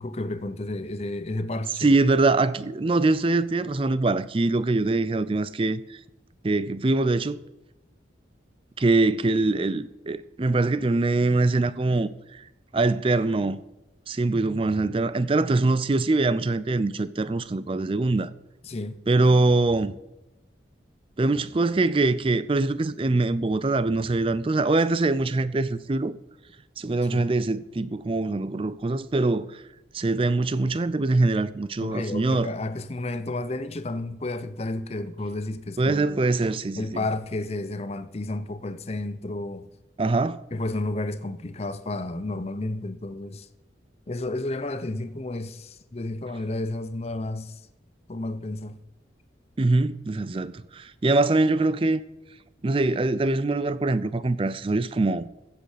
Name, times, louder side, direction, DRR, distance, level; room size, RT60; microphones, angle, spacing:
voice 1, 0.0-2.0 18.6-19.0 27.0-27.3 31.8-36.2 36.7-39.7 40.5-43.5 44.1-47.6 48.1-48.8, left 2 dB, 35° left, 0.6 m, -31 dB
voice 2, 1.8-5.8 6.4-7.4 8.8-12.4 12.7-13.6 14.1-18.3 19.1-20.0 21.2-26.2 26.8-29.6 29.9-32.5 35.8-37.0 40.0-40.4 49.6-52.0 52.6-55.3, right 2 dB, 30° right, 0.4 m, -23 dB
15.5 x 7.7 x 5.0 m
head